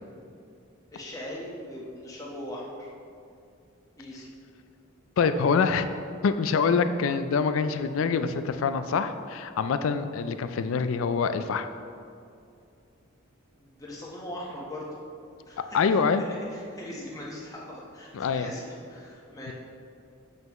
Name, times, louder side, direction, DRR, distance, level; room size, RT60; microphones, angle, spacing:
voice 1, 0.9-2.9 4.0-4.3 13.6-15.0 15.5-19.5, left 1 dB, 15° left, -4 dB, 1.1 m, -40 dB
voice 2, 5.2-5.9 6.2-11.7 15.7-16.2 18.1-18.5 19.5-19.6, left 5 dB, 70° left, 11 dB, 0.3 m, -25 dB
7.4 x 5.5 x 3.0 m, 2.4 s
head